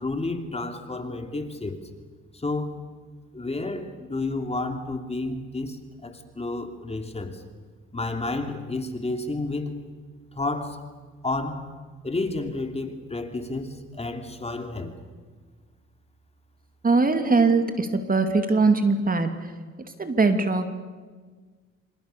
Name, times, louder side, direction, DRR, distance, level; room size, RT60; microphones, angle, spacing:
voice 1, 0.0-1.8 2.3-2.8 3.3-7.4 7.9-9.7 10.3-10.8 11.2-11.7 12.0-14.9, left 2 dB, 20° left, 6 dB, 3.0 m, -31 dB
voice 2, 16.8-19.5 20.0-20.7, right 3 dB, 30° right, 8 dB, 2.7 m, -21 dB
27.5 x 26.5 x 6.9 m, 1.5 s
cardioid pair, 90°, 30 cm